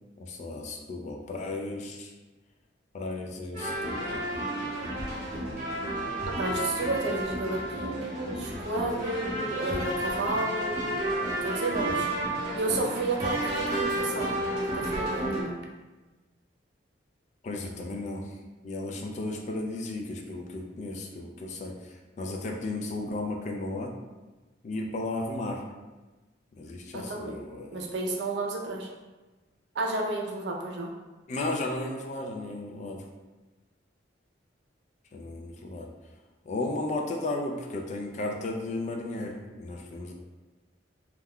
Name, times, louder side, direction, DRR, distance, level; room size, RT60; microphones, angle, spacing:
voice 1, 0.2-2.1 2.9-4.2 17.4-18.3 18.6-23.9 24.6-25.6 26.5-27.9 31.3-33.0 35.1-35.9 36.5-40.1, left 2 dB, 40° left, 2 dB, 0.3 m, -34 dB
sound 1, 3.5-15.4, right 1 dB, 40° right, 1.0 m, -31 dB
voice 2, 6.3-11.0 11.4-12.1 12.6-15.6 26.9-27.3 27.7-28.9 29.7-30.9, right 2 dB, 65° right, 0 dB, 0.4 m, -32 dB
2.3 x 2.1 x 3.4 m, 1.2 s
head